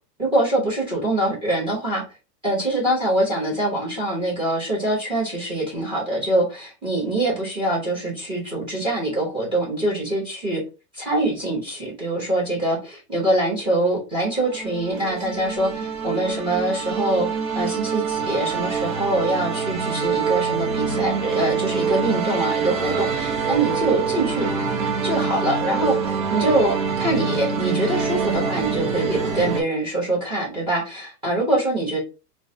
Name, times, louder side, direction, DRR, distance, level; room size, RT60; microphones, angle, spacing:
voice 1, 0.2-2.0 2.4-10.6 10.9-24.5 25.0-32.0, right 1 dB, 10° right, -3 dB, 0.9 m, -24 dB
sound 1, 14.3-29.6, right 5 dB, 55° right, 0.8 m, -25 dB
3.7 x 2.2 x 2.7 m, 0.30 s
supercardioid pair, 170°, 49 cm